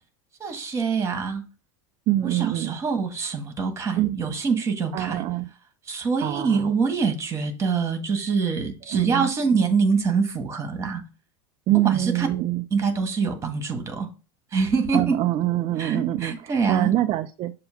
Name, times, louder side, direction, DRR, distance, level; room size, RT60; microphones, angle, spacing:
voice 1, 0.4-1.4 2.2-5.2 5.9-11.0 11.8-12.3 12.7-14.1 14.5-15.2 15.8-16.9, right 5 dB, 20° right, 5 dB, 1.6 m, -25 dB
voice 2, 2.1-2.8 4.0-4.2 4.9-5.5 6.2-6.7 8.9-9.3 11.7-12.6 14.9-17.5, right 14 dB, 35° right, 8 dB, 0.4 m, -24 dB
6.9 x 2.9 x 5.7 m, 0.33 s
supercardioid pair, 135°, 16 cm